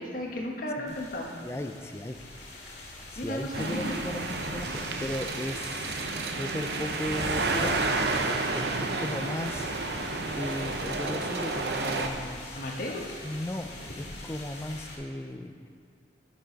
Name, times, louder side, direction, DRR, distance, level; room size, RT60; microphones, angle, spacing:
voice 1, 0.0-1.3 3.1-3.9 12.5-13.1, left 1 dB, 50° left, 0 dB, 1.2 m, -34 dB
sound 1, 0.9-15.0, left 2 dB, 70° left, 2.1 m, -44 dB
voice 2, 1.4-2.2 3.1-7.8 8.2-10.0 10.3-12.6 13.2-13.7 14.0-15.7, left 1 dB, 15° left, 7 dB, 0.4 m, -36 dB
sound 2, 3.5-12.1, right 3 dB, 65° right, 0.7 m, -31 dB
9.8 x 6.3 x 5.2 m, 2.4 s
head